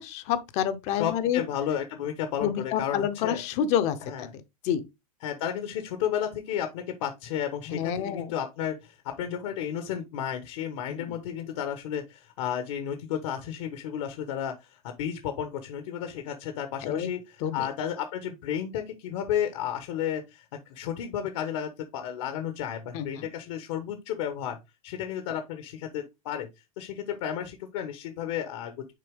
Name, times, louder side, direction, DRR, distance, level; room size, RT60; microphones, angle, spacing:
voice 1, 0.0-1.4 2.4-4.3 4.6-4.8 7.7-8.3 10.9-11.0 16.8-17.1 17.4-17.7 22.9-23.1, left 9 dB, 35° left, 0.8 m, -28 dB
voice 2, 0.9-3.4 4.0-4.3 5.2-24.6 24.8-26.5 26.8-28.9, left 9 dB, 60° left, 1.2 m, -32 dB
6.7 x 4.1 x 3.5 m
supercardioid pair, 150°, 18 cm